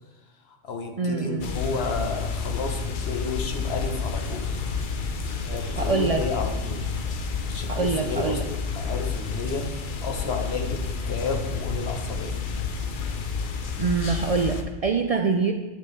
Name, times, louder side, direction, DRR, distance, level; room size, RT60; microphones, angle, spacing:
voice 1, 0.5-4.5 5.4-7.0 7.5-8.4 8.7-9.7 10.0-12.4, left 4 dB, 80° left, 4 dB, 1.2 m, -32 dB
voice 2, 1.0-1.5 5.8-6.2 7.7-8.4 13.8-15.5, right 4 dB, 55° right, 5 dB, 0.4 m, -24 dB
sound 1, 1.4-14.6, left 5 dB, 55° left, 0.8 m, -30 dB
9.2 x 6.7 x 3.2 m, 1.2 s
omnidirectional pair, 1.0 m